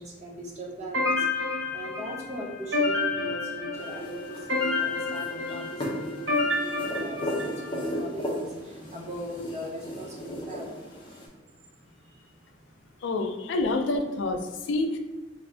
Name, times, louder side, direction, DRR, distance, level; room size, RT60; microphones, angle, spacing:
voice 1, 0.0-11.4 11.8-13.0, equal, 40° right, -2 dB, 0.7 m, -40 dB
sound 1, 0.9-7.9, left 3 dB, 80° right, 1.0 m, -29 dB
sound 2, 3.7-11.3, equal, 25° left, 0.5 m, -36 dB
voice 2, 13.0-15.0, left 2 dB, 80° left, 5 dB, 0.4 m, -27 dB
2.6 x 2.5 x 3.3 m, 1.2 s
head